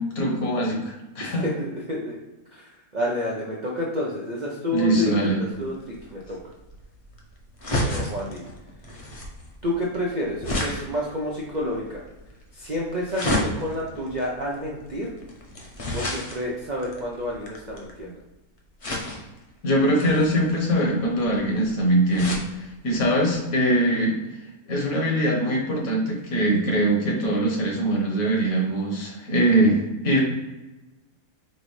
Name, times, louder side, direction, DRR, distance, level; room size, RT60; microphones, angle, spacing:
voice 1, 0.0-1.4 4.7-5.4 19.6-24.2 24.7-30.2, right 1 dB, 70° left, -1 dB, 1.6 m, -22 dB
voice 2, 1.2-2.2 2.5-2.6 2.9-6.4 7.8-8.4 9.6-12.0 12.5-15.1 15.9-18.2, left 1 dB, 60° right, -3 dB, 0.4 m, -29 dB
sound 1, 5.5-18.1 18.8-19.4 19.9-22.5 23.0-23.1 23.3-23.4, left 1 dB, 35° left, 0.5 m, -32 dB
5.4 x 2.6 x 3.1 m, 1.1 s
omnidirectional pair, 1.6 m